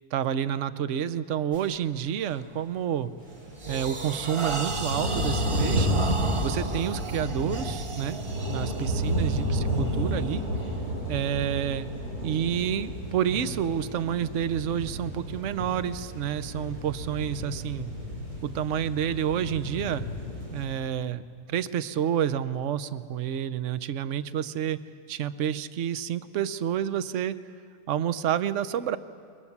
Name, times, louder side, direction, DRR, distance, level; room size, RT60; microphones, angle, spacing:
voice 1, 0.1-3.1 3.7-6.0 6.4-8.2 8.5-10.4 11.1-11.9 12.2-17.9 18.4-20.0 20.5-21.2 21.5-24.8 25.1-27.4 27.9-29.0, right 9 dB, 60° right, 13 dB, 1.0 m, -29 dB
sound 1, 1.5-1.8 2.3-2.6 3.0-11.1, right 3 dB, 30° right, 0.7 m, -36 dB
sound 2, 3.2-20.7, equal, 85° right, 7.8 m, -31 dB
28.0 x 23.0 x 7.3 m, 2.2 s
omnidirectional pair, 1.6 m